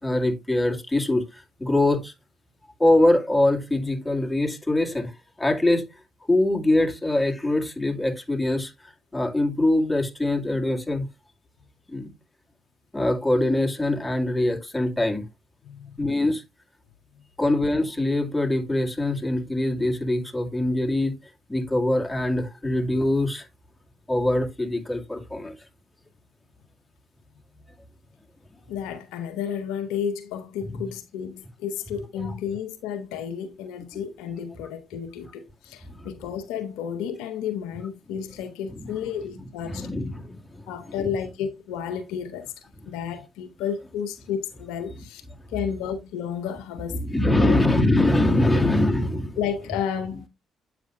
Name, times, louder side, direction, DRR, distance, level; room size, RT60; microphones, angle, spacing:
voice 1, 0.0-2.1 2.8-5.1 5.4-5.9 6.3-8.7 9.1-11.1 11.9-12.1 12.9-15.2 16.0-16.4 17.4-21.1 21.5-23.5 24.1-25.6 30.7-30.8 32.2-32.3 36.0-36.1 38.8-38.9 39.7-40.6 47.0-49.4, left 1 dB, 10° left, 2.0 m, -23 dB
voice 2, 28.7-39.9 40.7-42.5 42.9-45.2 45.5-47.6 49.4-50.3, left 8 dB, 80° left, 0.7 m, -32 dB
8.1 x 5.9 x 2.4 m
hypercardioid pair, 50°, 0 cm